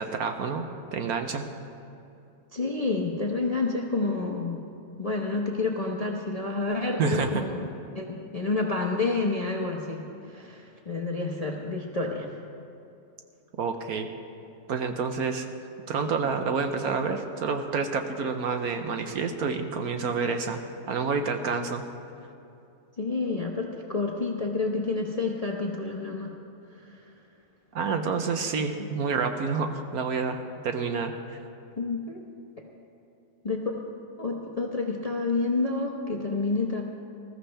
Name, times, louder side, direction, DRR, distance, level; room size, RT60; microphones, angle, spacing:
voice 1, 0.0-1.5 7.0-7.4 13.6-14.1 14.7-15.5 15.9-20.6 20.9-21.8 27.7-31.1, right 5 dB, 65° right, 6 dB, 1.2 m, -28 dB
voice 2, 2.5-4.6 5.0-7.7 7.9-12.3 23.0-26.3 26.7-27.1 28.8-28.9 31.8-32.2 33.4-33.9 34.2-36.8, left 3 dB, 30° left, 0 dB, 0.7 m, -29 dB
19.5 x 14.0 x 3.4 m, 2.6 s
omnidirectional pair, 1.8 m